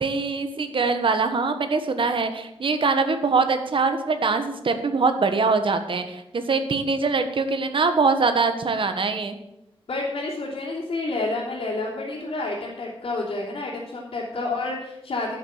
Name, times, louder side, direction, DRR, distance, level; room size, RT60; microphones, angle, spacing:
voice 1, 0.0-9.4, right 4 dB, 60° right, 8 dB, 1.4 m, -23 dB
voice 2, 9.9-15.4, left 2 dB, 75° left, -8 dB, 3.4 m, -29 dB
11.5 x 7.2 x 7.3 m, 0.85 s
wide cardioid pair, 130°, 10 cm